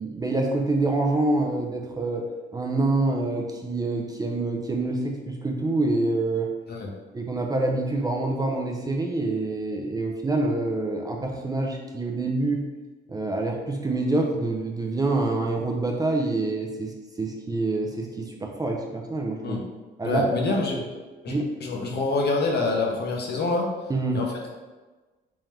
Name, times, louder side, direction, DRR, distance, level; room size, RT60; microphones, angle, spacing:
voice 1, 0.0-2.2 2.5-6.5 7.1-12.6 13.1-19.6 20.0-20.5 20.7-20.8 21.3-21.5 23.9-24.2, right 2 dB, 20° right, 1 dB, 0.5 m, -26 dB
voice 2, 20.0-20.8 21.2-21.3 21.6-23.7 24.1-24.3, left 3 dB, 55° left, 0 dB, 0.8 m, -26 dB
3.6 x 2.8 x 3.2 m, 1.2 s
cardioid pair, 90°, 20 cm